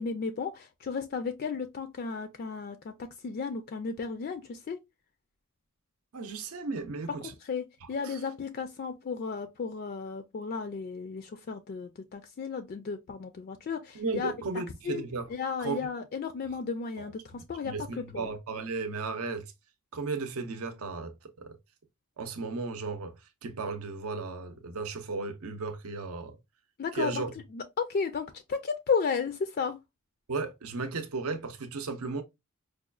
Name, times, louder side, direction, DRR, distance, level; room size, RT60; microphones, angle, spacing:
voice 1, 0.0-2.9 3.2-4.8 7.5-14.3 14.9-15.0 15.3-18.3 26.8-27.2 27.5-29.8, left 5 dB, 45° left, 0.3 m, -34 dB
voice 2, 6.1-7.3 7.8-8.2 13.9-15.3 15.6-15.8 17.0-19.5 19.9-21.5 22.2-23.1 23.4-26.4 26.9-27.3 30.3-32.2, right 4 dB, 70° right, 0.6 m, -35 dB
4.8 x 2.2 x 2.3 m
head